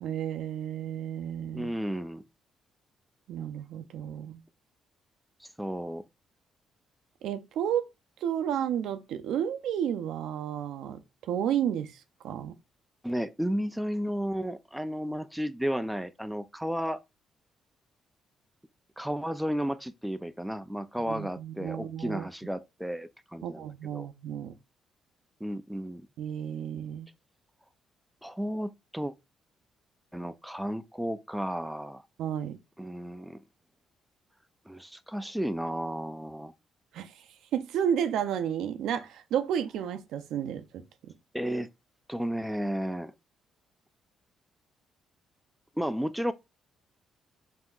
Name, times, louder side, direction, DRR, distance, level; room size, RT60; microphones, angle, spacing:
voice 1, 0.0-1.7 3.3-4.4 7.2-7.8 8.2-11.0 11.3-12.0 12.2-12.6 21.1-22.3 23.4-24.5 26.2-27.1 32.2-32.6 36.9-37.1 37.5-41.1, right 9 dB, 80° right, 0.5 m, -32 dB
voice 2, 1.5-2.2 5.4-6.0 13.0-17.0 19.0-24.1 25.4-26.1 28.2-29.1 30.1-32.0 32.8-33.4 34.7-36.5 41.3-41.7 42.1-43.1 45.8-46.3, equal, 5° right, 0.4 m, -33 dB
5.6 x 2.8 x 2.4 m
cardioid pair, 90°, 0 cm